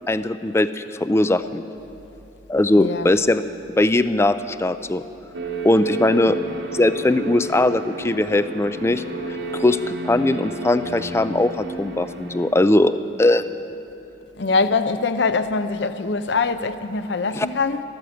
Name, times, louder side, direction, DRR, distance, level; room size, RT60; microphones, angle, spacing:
voice 1, 0.1-1.6 2.5-3.4 3.8-5.0 5.6-6.4 6.7-9.8 10.0-13.4 17.3-17.5, left 2 dB, 15° left, 0.3 m, -20 dB
voice 2, 2.8-3.1 14.4-17.8, left 4 dB, 70° left, 0.6 m, -23 dB
sound 1, 5.3-12.5, right 2 dB, 70° right, 1.5 m, -31 dB
13.5 x 13.0 x 7.8 m
head